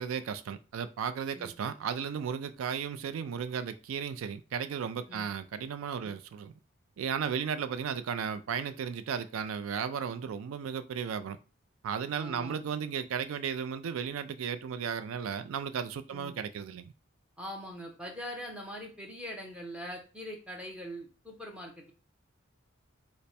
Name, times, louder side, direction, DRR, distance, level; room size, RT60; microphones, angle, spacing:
voice 1, 0.0-6.5 7.0-11.4 11.8-16.9, right 7 dB, 90° right, 0.3 m, -35 dB
voice 2, 12.1-12.6 16.1-16.3 17.4-21.9, equal, 5° right, 0.8 m, -42 dB
3.2 x 2.0 x 4.1 m
head